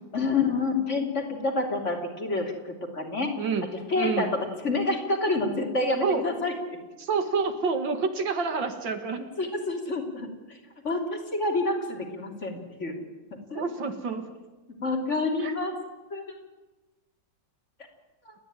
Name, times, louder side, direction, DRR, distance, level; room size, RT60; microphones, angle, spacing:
voice 1, 0.1-3.3 3.9-6.5 9.2-10.6 10.8-13.0 13.5-13.6 14.8-15.8 16.1-16.2 18.2-18.3, left 3 dB, 40° left, 2 dB, 3.2 m, -28 dB
voice 2, 4.0-4.3 6.0-6.2 7.0-9.2 13.5-14.2 15.4-15.5, right 4 dB, 75° right, 8 dB, 2.5 m, -28 dB
29.5 x 11.0 x 9.9 m, 1.2 s
omnidirectional pair, 2.0 m